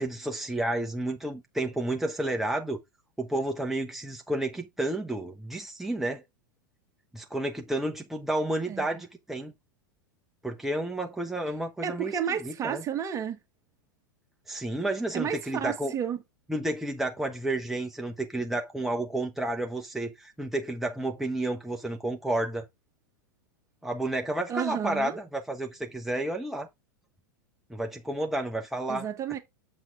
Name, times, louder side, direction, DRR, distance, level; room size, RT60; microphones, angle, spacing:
voice 1, 0.0-2.8 3.2-6.2 7.1-9.5 10.4-12.1 12.4-12.8 14.5-15.9 16.5-22.6 23.8-26.7 27.7-29.1, right 1 dB, 5° right, 1.1 m, -31 dB
voice 2, 8.7-9.0 11.8-13.4 15.1-16.2 24.5-25.2 28.9-29.4, right 8 dB, 30° right, 1.7 m, -31 dB
7.6 x 6.2 x 3.5 m
hypercardioid pair, 95°, 11 cm